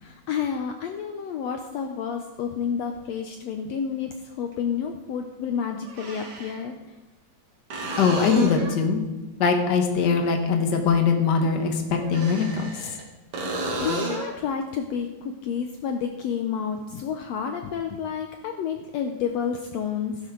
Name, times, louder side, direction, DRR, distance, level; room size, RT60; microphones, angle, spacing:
voice 1, 0.0-6.7 13.4-20.2, left 7 dB, 70° left, 5 dB, 1.8 m, -30 dB
sound 1, 2.4-2.5 4.5-4.6 5.9-6.6 7.7-8.8 12.0-13.0 13.3-14.4 18.0-18.1, right 1 dB, 50° right, 3.0 m, -32 dB
voice 2, 8.0-9.0 9.4-12.7, left 5 dB, 45° left, 3 dB, 1.7 m, -22 dB
16.0 x 11.0 x 3.9 m, 1.1 s
omnidirectional pair, 3.4 m